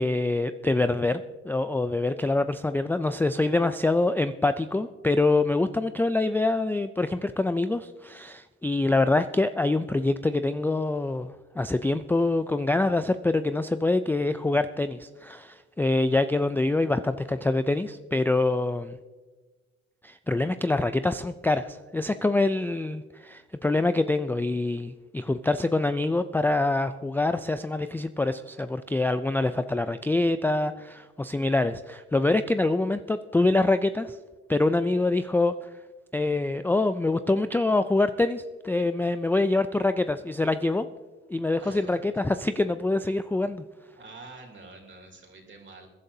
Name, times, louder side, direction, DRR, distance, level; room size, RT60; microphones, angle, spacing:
voice 1, 0.0-19.0 20.0-34.2 34.5-35.7 36.1-40.9 41.3-43.6, left 2 dB, 5° left, 11 dB, 0.3 m, -25 dB
voice 2, 41.6-42.0 43.9-45.9, right 3 dB, 40° right, 1 dB, 3.1 m, -46 dB
22.0 x 11.5 x 2.7 m, 1.3 s
cardioid pair, 90°, 30 cm